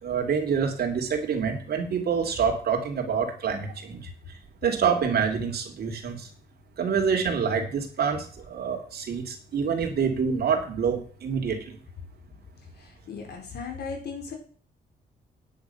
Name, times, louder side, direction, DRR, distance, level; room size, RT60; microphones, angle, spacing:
voice 1, 0.0-4.1 4.6-6.3 6.8-11.7, right 6 dB, 65° right, 3 dB, 2.9 m, -27 dB
voice 2, 12.7-14.3, left 5 dB, 70° left, 2 dB, 4.5 m, -37 dB
9.8 x 9.4 x 5.7 m, 0.43 s
wide cardioid pair, 140°, 17 cm